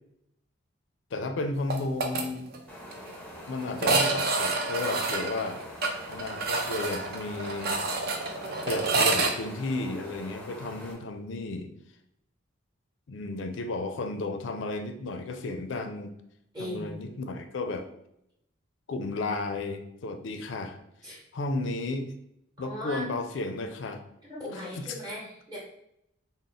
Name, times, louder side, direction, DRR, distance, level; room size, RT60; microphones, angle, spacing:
voice 1, 1.1-2.5 3.5-5.6 6.1-7.8 8.7-11.7 13.1-16.1 16.6-17.9 18.9-20.8 21.3-22.1 22.6-24.0 24.7-24.9, left 2 dB, 60° left, 8 dB, 0.4 m, -33 dB
sound 1, 1.7-2.2 2.5-2.6 2.9-3.0 3.8-9.3, right 3 dB, 50° right, 0.4 m, -28 dB
sound 2, 2.7-10.9, equal, 5° left, 0.6 m, -44 dB
voice 2, 16.5-17.0 21.0-21.2 22.6-23.0 24.3-25.6, equal, 20° right, -6 dB, 0.9 m, -38 dB
3.7 x 2.0 x 3.9 m, 0.78 s
head